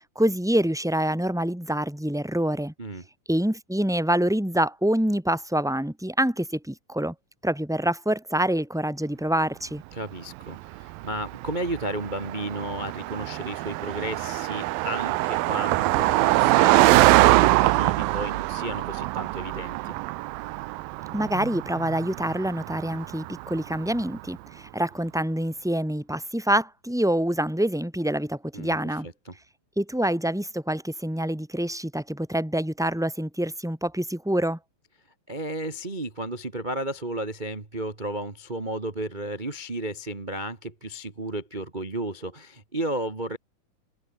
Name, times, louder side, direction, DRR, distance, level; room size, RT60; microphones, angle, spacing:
voice 1, 0.1-2.7 3.3-7.1 7.4-9.8 21.1-29.1 29.8-34.6, right 1 dB, ahead, 0.7 m, -26 dB
voice 2, 9.9-19.9 28.5-28.8 29.0-29.3 35.3-43.4, right 1 dB, 65° right, 0.4 m, -33 dB
Car passing by, 10.4-24.1, right 19 dB, 85° right, 2.4 m, -24 dB
omnidirectional pair, 4.2 m